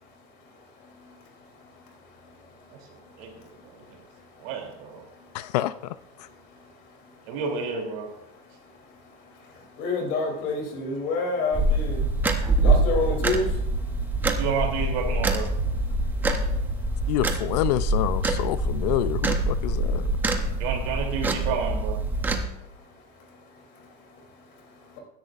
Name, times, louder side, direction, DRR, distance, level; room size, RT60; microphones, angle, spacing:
voice 1, 0.8-4.5 5.1-5.6 6.1-7.4 8.3-14.4 15.9-17.2 18.4-18.9 19.5-20.6 22.2-25.0, left 3 dB, 50° left, 1 dB, 3.1 m, -34 dB
voice 2, 3.2-3.8 4.4-5.0 7.3-8.1 14.4-15.5 20.6-22.0, right 5 dB, 55° right, 2 dB, 3.0 m, -30 dB
voice 3, 5.3-5.7 17.1-20.0, left 14 dB, 75° left, 15 dB, 0.5 m, -27 dB
sound 1, 11.5-22.4, right 2 dB, 10° right, 0.7 m, -25 dB
20.0 x 10.5 x 2.5 m, 0.89 s
supercardioid pair, 165°, 21 cm